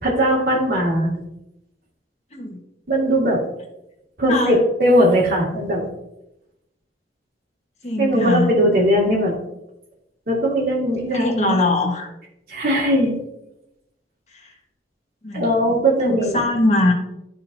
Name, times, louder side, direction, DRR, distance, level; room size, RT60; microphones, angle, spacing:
voice 1, 0.0-1.2 2.9-3.4 4.2-5.8 8.0-9.3 10.3-11.6 12.5-13.2 15.3-16.4, equal, 55° right, -3 dB, 2.3 m, -19 dB
voice 2, 7.8-8.5 11.1-12.1 15.2-15.8 16.0-16.9, left 2 dB, 40° left, 0 dB, 1.5 m, -21 dB
12.5 x 4.4 x 2.7 m, 0.87 s
head